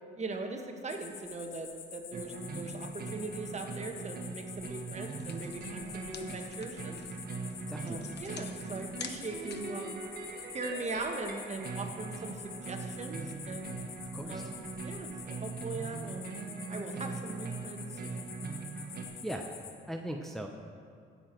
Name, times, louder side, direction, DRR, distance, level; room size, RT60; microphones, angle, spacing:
voice 1, 0.1-7.0 7.8-10.0 10.5-13.8 14.3-16.2 16.7-18.2, right 3 dB, 35° right, 4 dB, 1.3 m, -40 dB
sound 1, 0.9-19.7, left 7 dB, 85° left, 1.2 m, -47 dB
sound 2, 2.1-19.1, right 4 dB, 50° right, 1.5 m, -41 dB
sound 3, 4.8-4.9 5.1-9.9, left 7 dB, 60° left, 0.9 m, -48 dB
voice 2, 7.7-8.0 14.1-14.4 19.2-19.5 19.9-20.5, equal, ahead, 1 dB, 0.8 m, -38 dB
16.5 x 6.9 x 4.6 m, 2.2 s
cardioid pair, 90°, 20 cm